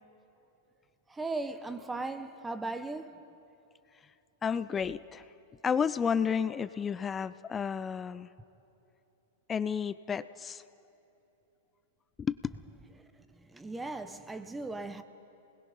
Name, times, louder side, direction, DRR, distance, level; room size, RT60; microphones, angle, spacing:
voice 1, 1.1-3.2 13.5-15.0, right 3 dB, 10° right, 1.0 m, -37 dB
voice 2, 4.4-5.2 5.6-8.3 9.5-10.6 12.2-12.4, left 7 dB, 20° left, 0.5 m, -31 dB
28.5 x 20.0 x 5.4 m
hypercardioid pair, 115°, 0 cm